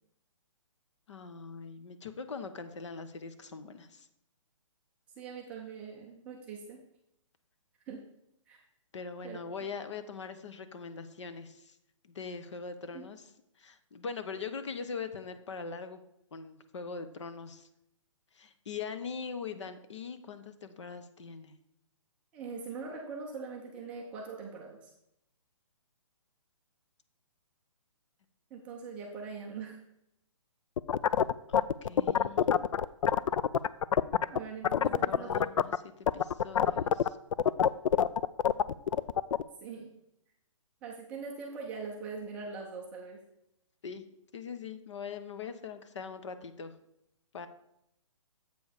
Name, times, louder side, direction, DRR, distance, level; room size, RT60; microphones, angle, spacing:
voice 1, 1.1-4.1 8.9-11.7 12.0-13.2 13.6-16.0 16.3-17.7 18.3-21.5 31.5-32.5 34.8-37.2 43.8-44.0 44.3-46.7 47.3-47.5, left 5 dB, 60° left, 10 dB, 0.9 m, -42 dB
voice 2, 5.2-6.8 7.9-8.0 8.5-8.6 9.2-9.4 12.9-13.0 22.3-24.9 28.5-29.8 34.3-35.5 39.6-39.9 40.8-43.2, right 5 dB, 5° right, -1 dB, 0.4 m, -42 dB
sound 1, 30.8-34.4 34.6-35.8 36.1-39.4, left 8 dB, 75° left, 0.4 m, -25 dB
7.9 x 5.3 x 5.0 m, 0.80 s
hypercardioid pair, 165°, 17 cm